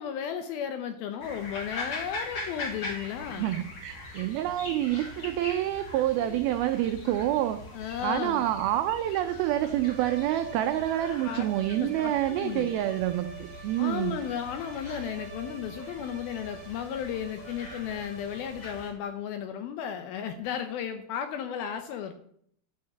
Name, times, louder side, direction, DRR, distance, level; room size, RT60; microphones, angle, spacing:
voice 1, 0.0-3.5 6.2-6.4 7.7-8.4 11.2-11.5 11.8-12.7 13.8-22.1, left 8 dB, 75° left, 8 dB, 2.3 m, -34 dB
sound 1, 1.2-18.9, left 2 dB, 45° left, 3.4 m, -42 dB
voice 2, 3.3-7.6 8.0-14.2, right 13 dB, 85° right, 9 dB, 2.1 m, -27 dB
sound 2, 9.7-18.9, right 6 dB, 50° right, 1.6 m, -46 dB
12.0 x 5.7 x 7.6 m, 0.67 s
omnidirectional pair, 5.0 m